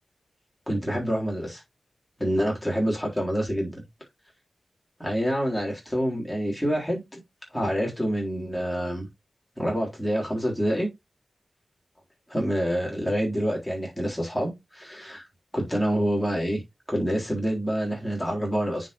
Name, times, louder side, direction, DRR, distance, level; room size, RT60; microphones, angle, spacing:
voice 1, 0.7-1.6 2.2-3.8 5.0-7.2 7.5-9.1 9.6-10.9 12.3-15.3 15.5-16.6 16.9-18.9, equal, 5° left, 3.8 m, -27 dB
9.2 x 5.3 x 3.1 m
wide cardioid pair, 130°, 0 cm